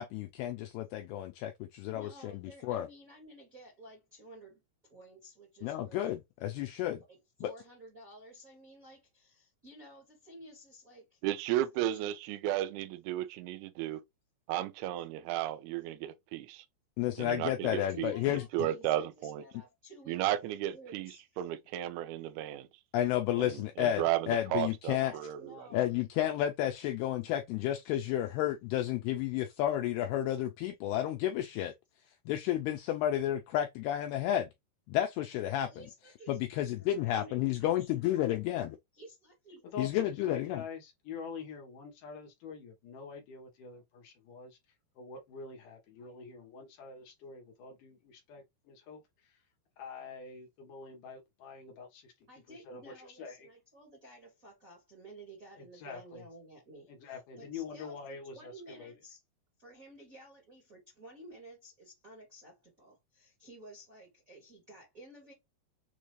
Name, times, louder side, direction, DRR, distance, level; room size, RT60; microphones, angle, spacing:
voice 1, 0.0-2.3 2.6-2.9 5.6-7.0 7.4-7.5 17.0-18.4 22.9-25.1 25.7-31.7 32.3-34.5 34.9-35.7 36.3-38.8 39.8-40.6, left 12 dB, 90° left, 2.3 m, -31 dB
voice 2, 1.9-4.6 4.9-6.0 7.1-11.2 11.5-12.0 17.6-21.2 24.9-25.9 35.7-36.4 36.7-37.9 38.9-39.7 52.3-59.2 59.6-65.3, right 1 dB, 35° right, 1.3 m, -53 dB
voice 3, 11.2-14.0 14.5-16.6 17.2-19.4 20.1-22.7 23.4-25.7, right 13 dB, 80° right, 2.4 m, -34 dB
voice 4, 39.6-44.6 45.0-49.4 49.8-53.5 55.6-56.2 56.9-58.9, left 5 dB, 70° left, 2.0 m, -46 dB
6.8 x 2.5 x 3.1 m
omnidirectional pair, 5.2 m